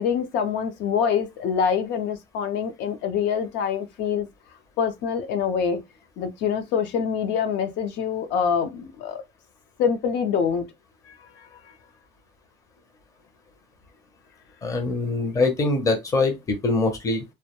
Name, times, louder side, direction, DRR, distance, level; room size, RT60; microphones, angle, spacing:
voice 1, 0.0-4.3 4.8-5.8 6.2-9.2 9.8-10.7 11.1-11.7, left 7 dB, 70° left, 0.5 m, -25 dB
voice 2, 14.6-17.2, left 3 dB, 15° left, 0.5 m, -23 dB
2.2 x 2.1 x 2.8 m
cardioid pair, 170°, 19 cm